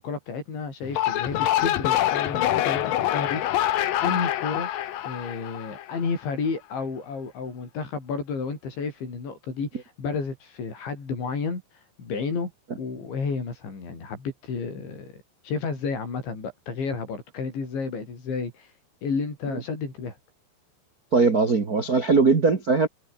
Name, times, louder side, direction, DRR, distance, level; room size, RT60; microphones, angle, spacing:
voice 1, 0.0-3.6 4.0-4.7 5.0-12.5 12.8-15.1 15.4-18.7 19.0-20.2, left 5 dB, 80° left, 10.0 m, -31 dB
sound 1, 0.8-6.1, left 12 dB, 65° left, 2.6 m, -25 dB
voice 2, 21.1-22.9, right 4 dB, 75° right, 0.8 m, -20 dB
omnidirectional pair, 5.2 m